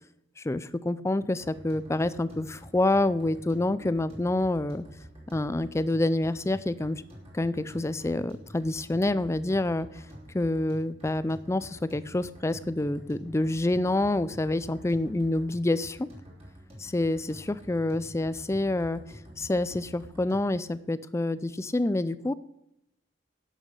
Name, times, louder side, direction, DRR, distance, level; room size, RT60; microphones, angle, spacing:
voice 1, 0.4-4.8 5.3-7.0 7.3-9.9 10.3-16.1 16.8-19.0 19.4-22.3, left 2 dB, 15° left, 15 dB, 0.4 m, -27 dB
sound 1, 1.4-20.6, equal, 30° right, 3.4 m, -48 dB
11.5 x 6.4 x 6.5 m, 0.84 s
head